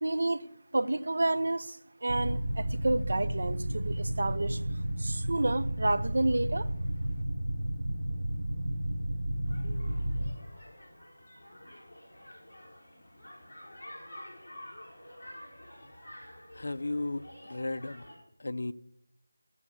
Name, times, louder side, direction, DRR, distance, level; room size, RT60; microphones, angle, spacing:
voice 1, 0.0-4.6 5.0-6.7, right 2 dB, 45° right, 0.6 m, -30 dB
sound 1, 2.1-10.3, right 1 dB, 65° right, 1.7 m, -32 dB
sound 2, 9.4-18.2, left 1 dB, 20° left, 4.5 m, -49 dB
voice 2, 16.5-18.0 18.4-18.7, left 2 dB, 45° left, 0.5 m, -35 dB
14.5 x 7.6 x 6.5 m
figure-of-eight pair, 175°, 0 cm